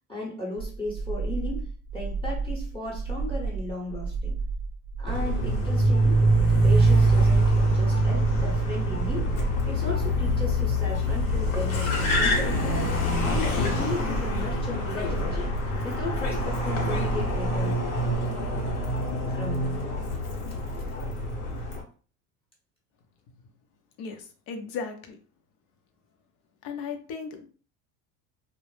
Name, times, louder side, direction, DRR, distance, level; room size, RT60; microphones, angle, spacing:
voice 1, 0.1-4.4 5.0-6.3 6.6-9.3 9.7-12.8 13.2-15.6 15.8-17.8 19.3-19.8, left 2 dB, 15° left, -2 dB, 0.8 m, -36 dB
sound 1, 0.6-18.2, right 3 dB, 40° right, 0.4 m, -33 dB
Car, 5.1-21.8, right 1 dB, 90° left, 0.9 m, -25 dB
voice 2, 24.0-25.2 26.6-27.5, left 5 dB, 65° left, 5 dB, 0.6 m, -36 dB
2.1 x 2.0 x 3.1 m, 0.40 s
supercardioid pair, 90°, 42 cm